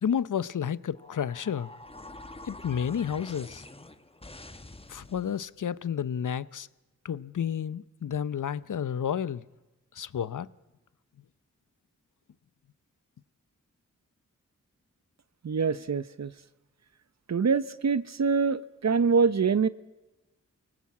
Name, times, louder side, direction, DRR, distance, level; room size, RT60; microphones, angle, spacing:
voice 1, 0.0-1.7 2.4-3.6 4.9-6.7 7.0-9.4 9.9-10.5, left 8 dB, 70° left, 0.8 m, -31 dB
sound 1, 1.0-5.5, left 2 dB, 20° left, 1.3 m, -47 dB
voice 2, 15.4-16.3 17.3-19.7, right 5 dB, 55° right, 0.8 m, -25 dB
24.0 x 18.5 x 8.6 m
cardioid pair, 50°, 32 cm